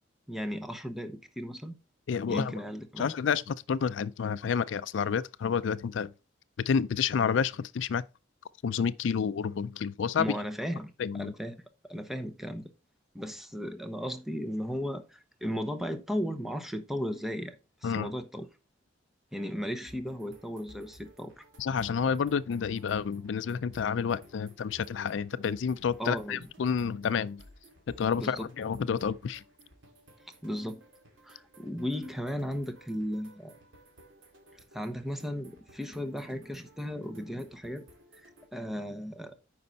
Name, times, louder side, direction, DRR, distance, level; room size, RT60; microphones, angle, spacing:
voice 1, 0.3-1.8 2.3-3.1 10.2-12.6 13.1-17.6 17.8-18.5 19.3-21.4 26.0-26.5 28.2-28.5 30.4-30.8 31.2-33.6 34.7-37.8 38.2-39.4, equal, ahead, 0.9 m, -36 dB
voice 2, 2.1-2.5 3.0-6.1 6.7-8.0 8.6-10.4 11.0-11.3 17.8-18.1 21.6-27.4 27.9-29.4, left 6 dB, 70° left, 0.4 m, -29 dB
sound 1, 19.8-38.5, equal, 75° right, 2.5 m, -57 dB
9.5 x 5.5 x 4.0 m
head